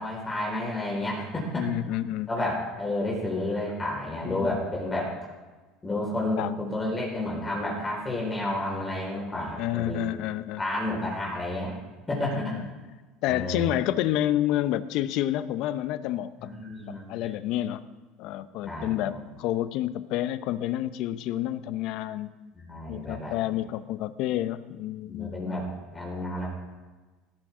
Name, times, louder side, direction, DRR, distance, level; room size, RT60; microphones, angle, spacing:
voice 1, 0.0-1.7 2.3-5.1 5.8-10.0 10.6-11.7 12.1-12.6 13.3-13.8 16.4-17.1 18.6-19.2 22.5-23.3 25.1-25.7 25.9-26.5, left 1 dB, 20° left, -3 dB, 4.8 m, -31 dB
voice 2, 1.6-2.3 4.3-4.6 6.4-6.6 9.6-10.6 12.3-12.6 13.2-16.5 16.9-17.8 18.2-22.3 22.9-25.6, left 13 dB, 65° left, 14 dB, 0.7 m, -29 dB
18.0 x 11.0 x 3.7 m, 1.3 s
supercardioid pair, 100°, 0 cm